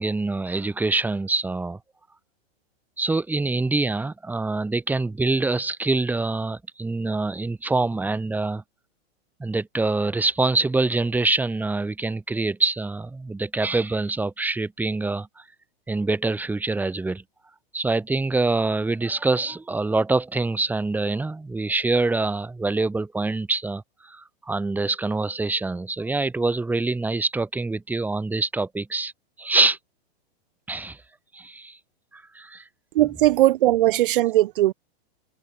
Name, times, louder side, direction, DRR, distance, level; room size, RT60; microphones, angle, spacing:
voice 1, 0.0-1.8 3.0-8.6 9.4-15.4 15.9-17.2 17.7-29.1 29.4-29.8 30.7-31.0 31.3-31.8 32.1-32.6 33.0-33.3, right 3 dB, 5° right, 4.4 m, -25 dB
voice 2, 32.9-34.7, right 15 dB, 55° right, 2.3 m, -19 dB
hypercardioid pair, 155°, 32 cm